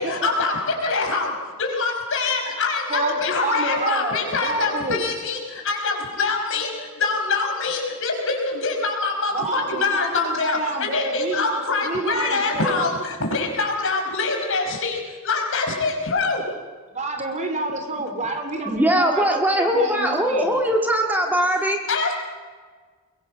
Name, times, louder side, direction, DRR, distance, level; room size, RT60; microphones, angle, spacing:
voice 1, 0.0-1.3 1.6-16.4 21.9-22.1, left 3 dB, 65° left, 2 dB, 5.1 m, -24 dB
voice 2, 2.9-5.1 9.3-12.9 16.9-20.6, right 2 dB, 35° right, 6 dB, 3.0 m, -28 dB
voice 3, 18.6-21.8, equal, 10° right, 2 dB, 1.9 m, -20 dB
23.0 x 22.0 x 6.3 m, 1.5 s
head